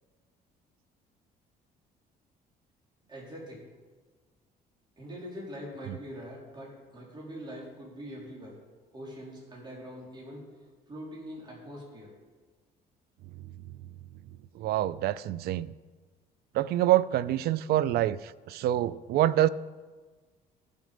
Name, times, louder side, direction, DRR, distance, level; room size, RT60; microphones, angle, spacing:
voice 1, 3.1-3.6 5.0-8.6 8.9-10.5 10.9-12.1, equal, 25° right, 3.5 m, -43 dB
voice 2, 14.5-15.7 16.5-19.5, right 13 dB, 70° right, 0.4 m, -26 dB
14.5 x 6.6 x 5.1 m
cardioid pair, 110°, 17 cm